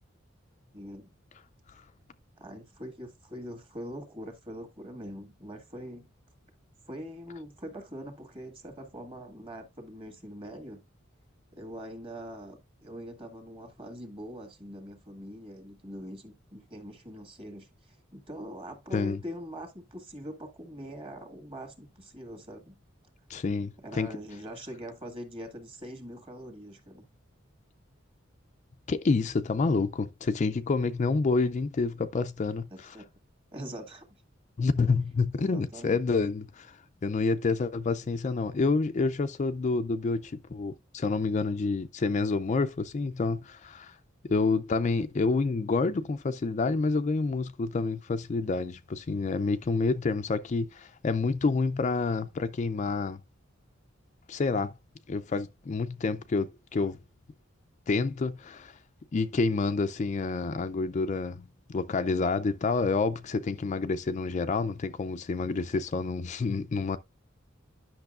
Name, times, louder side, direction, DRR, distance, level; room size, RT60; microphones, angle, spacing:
voice 1, 0.7-1.1 2.4-6.1 6.9-10.8 11.5-22.8 23.8-27.1 32.7-33.0 33.5-34.1 35.4-36.0, equal, 30° right, 1.8 m, -43 dB
voice 2, 23.3-24.1 28.9-32.7 34.6-44.0 44.2-53.2 54.3-54.7 55.1-57.0 57.9-58.8 59.1-67.0, left 4 dB, 35° left, 0.4 m, -28 dB
10.5 x 6.0 x 2.4 m
head